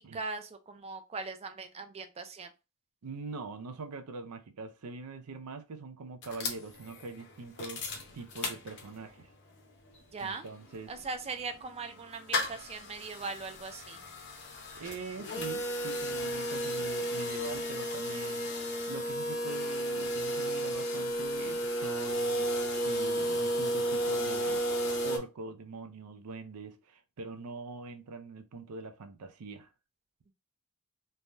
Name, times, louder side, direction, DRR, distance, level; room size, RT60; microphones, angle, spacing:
voice 1, 0.0-2.5 10.1-10.5 10.9-14.0, right 4 dB, 25° right, 0.4 m, -40 dB
voice 2, 3.0-7.9 8.1-9.3 10.2-11.0 14.7-18.5 18.9-22.5 22.8-24.7 25.0-29.7, right 4 dB, 85° right, 0.5 m, -43 dB
sound 1, 6.2-9.2 9.6-9.7 9.9-25.2, equal, 50° left, 0.7 m, -33 dB
3.3 x 2.2 x 2.5 m
head